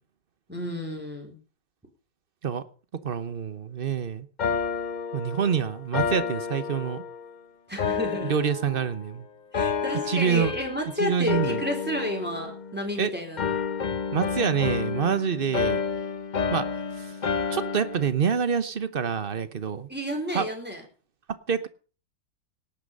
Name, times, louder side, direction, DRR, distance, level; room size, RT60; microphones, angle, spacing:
voice 1, 0.5-1.4 7.7-8.4 9.5-13.5 19.9-20.8, left 1 dB, 5° right, 2 dB, 3.9 m, -31 dB
voice 2, 3.0-4.3 5.1-7.0 8.2-9.3 10.1-10.5 11.0-11.6 13.0-13.1 14.1-15.8 16.5-17.2 17.5-19.9 20.3-20.5 21.5-21.7, right 7 dB, 40° right, 13 dB, 0.8 m, -26 dB
sound 1, 4.4-7.3 7.8-9.1 9.5-10.9 11.3-13.0 13.4-18.1, left 6 dB, 60° left, 0.4 m, -30 dB
18.0 x 9.0 x 5.3 m, 0.38 s
omnidirectional pair, 2.0 m